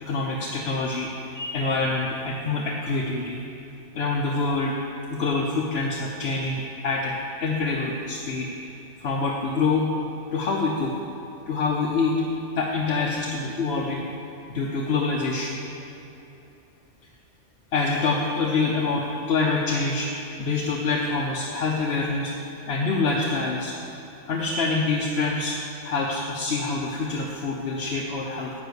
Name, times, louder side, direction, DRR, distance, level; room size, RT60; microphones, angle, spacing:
voice 1, 0.0-3.4 3.9-4.7 5.1-8.5 9.0-9.9 10.3-10.9 11.5-12.2 12.6-14.1 14.5-15.6 17.7-24.0 24.3-25.6 25.8-28.5, left 3 dB, 60° left, -1 dB, 1.0 m, -26 dB
10.0 x 5.9 x 8.1 m, 2.8 s
omnidirectional pair, 1.2 m